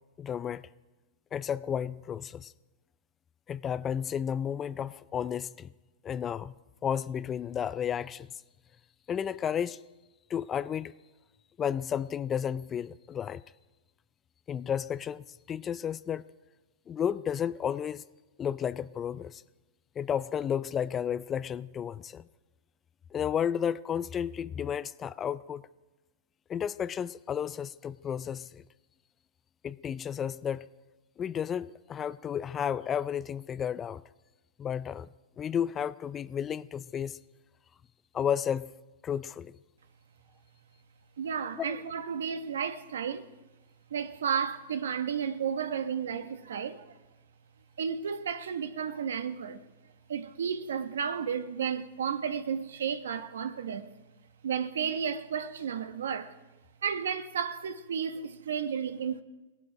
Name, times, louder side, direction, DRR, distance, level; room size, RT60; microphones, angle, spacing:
voice 1, 0.2-0.7 1.3-2.5 3.5-5.7 6.0-8.3 9.1-9.8 10.3-10.9 11.6-13.4 14.5-16.2 16.9-18.0 18.4-19.4 20.0-22.2 23.1-25.6 26.5-28.6 29.6-30.7 31.2-34.0 34.6-35.1 35.4-37.2 38.1-38.7 39.0-39.6 41.5-41.8, left 8 dB, 20° left, 0.4 m, -32 dB
voice 2, 41.2-43.3 43.9-46.9 47.8-49.6 50.1-53.9 54.4-56.3 56.8-59.2, right 7 dB, 85° right, 1.2 m, -32 dB
17.5 x 11.5 x 4.9 m
hypercardioid pair, 135°, 0 cm